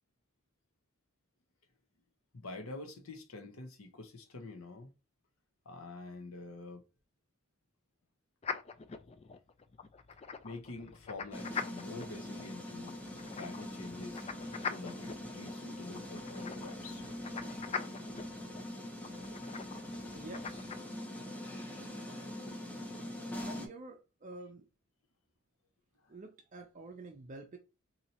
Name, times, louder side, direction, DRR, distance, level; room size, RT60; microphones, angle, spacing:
voice 1, 2.3-4.9 5.7-6.8 10.4-13.0 13.3-14.2 14.6-17.0, left 3 dB, 75° left, 0.8 m, -46 dB
sound 1, 8.4-20.8, left 6 dB, 30° left, 0.3 m, -44 dB
sound 2, 11.3-23.7, left 1 dB, 5° left, 0.7 m, -43 dB
voice 2, 20.1-20.6 23.3-24.7 26.1-27.6, right 2 dB, 35° right, 0.5 m, -48 dB
4.1 x 2.8 x 2.8 m
head